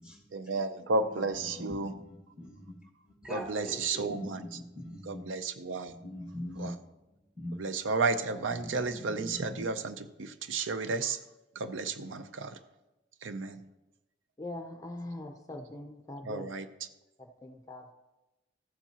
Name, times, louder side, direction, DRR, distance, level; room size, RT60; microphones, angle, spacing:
voice 1, 0.3-1.9 3.3-4.4 5.1-5.9 6.6-6.7 7.6-11.2 11.6-12.6 13.2-13.6 16.2-16.7, right 3 dB, 90° right, 11 dB, 0.5 m, -32 dB
voice 2, 1.1-2.8 3.0-5.3 5.9-6.8 7.3-7.6 8.4-9.6, left 1 dB, 5° right, 1 dB, 1.6 m, -43 dB
voice 3, 14.4-16.5 17.2-17.9, left 1 dB, 20° left, 5 dB, 0.5 m, -42 dB
14.5 x 7.2 x 2.9 m, 1.0 s
head